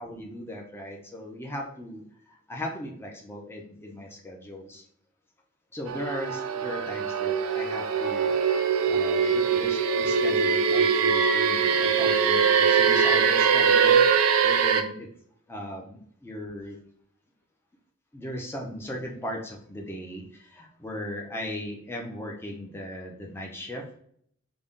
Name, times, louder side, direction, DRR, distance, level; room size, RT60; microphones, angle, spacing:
voice 1, 0.0-2.0 2.5-4.8 5.7-8.4 8.9-15.1 15.5-16.8 18.1-23.8, left 1 dB, 10° left, 0 dB, 0.6 m, -37 dB
sound 1, 5.9-14.8, right 6 dB, 80° right, 0.4 m, -22 dB
3.8 x 2.2 x 3.6 m, 0.64 s
head